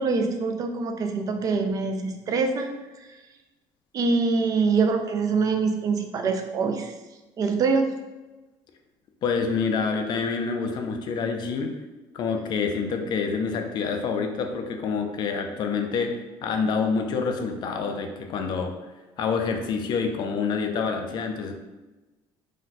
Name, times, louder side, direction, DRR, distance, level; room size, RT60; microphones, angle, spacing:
voice 1, 0.0-2.7 3.9-6.9 7.4-7.9, right 4 dB, 35° right, 5 dB, 0.4 m, -24 dB
voice 2, 9.2-11.8 12.1-18.7 19.2-21.5, left 5 dB, 45° left, 5 dB, 0.4 m, -27 dB
2.5 x 2.2 x 3.9 m, 1.1 s
cardioid pair, 135°, 10 cm